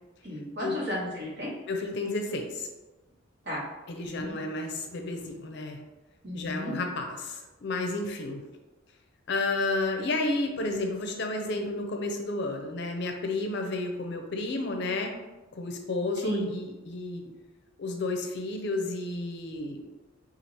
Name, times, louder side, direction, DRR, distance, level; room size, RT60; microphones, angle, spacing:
voice 1, 0.2-1.5 3.5-3.6 4.0-4.3 6.2-6.7 16.2-16.5, equal, 55° right, -6 dB, 1.2 m, -34 dB
voice 2, 1.7-2.7 3.9-5.8 6.3-8.4 9.3-15.1 15.5-17.2 17.8-19.8, left 2 dB, 60° left, 3 dB, 0.5 m, -31 dB
4.5 x 2.4 x 2.8 m, 1.1 s
head